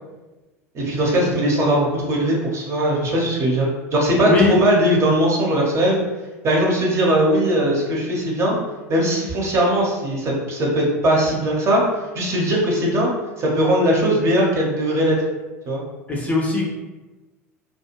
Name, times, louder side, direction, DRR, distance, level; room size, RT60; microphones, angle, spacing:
voice 1, 0.7-3.7 3.9-6.0 6.4-8.6 8.9-11.8 12.1-13.1 13.4-15.2 15.7-15.8, right 1 dB, 35° right, -2 dB, 0.8 m, -19 dB
voice 2, 4.2-4.5 16.1-16.6, left 3 dB, 15° left, -3 dB, 0.6 m, -19 dB
2.4 x 2.2 x 2.9 m, 1.1 s
figure-of-eight pair, 75°, 8 cm